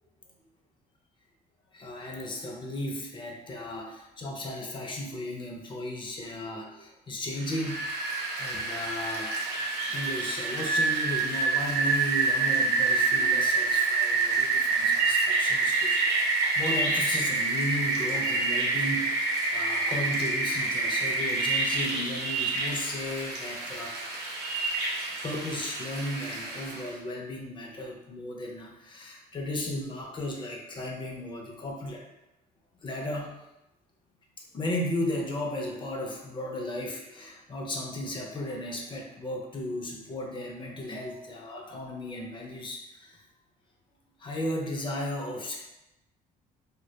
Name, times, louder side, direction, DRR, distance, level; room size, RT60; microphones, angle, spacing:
voice 1, 1.7-7.9 8.4-9.4 9.9-19.3 19.5-24.0 25.2-32.0 32.8-33.4 34.5-43.2 44.2-45.6, left 1 dB, 30° left, 0 dB, 0.5 m, -35 dB
Rain, 7.4-26.9, right 3 dB, 80° right, 0.7 m, -27 dB
2.2 x 2.1 x 2.7 m, 0.91 s
cardioid pair, 110°, 17 cm